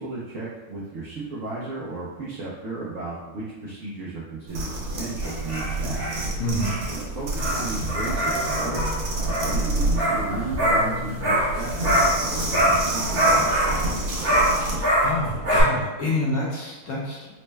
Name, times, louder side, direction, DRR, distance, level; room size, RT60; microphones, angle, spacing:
voice 1, 0.0-6.1 6.9-14.1, right 3 dB, 70° right, -7 dB, 0.8 m, -34 dB
sound 1, 4.5-14.8, right 1 dB, 85° right, 1.5 m, -29 dB
sound 2, 5.2-12.3 12.5-15.6, right 1 dB, 40° right, 1.0 m, -24 dB
voice 2, 6.4-6.8 14.7-17.3, left 1 dB, 65° left, -4 dB, 1.0 m, -28 dB
4.1 x 2.1 x 3.2 m, 1.2 s
omnidirectional pair, 2.0 m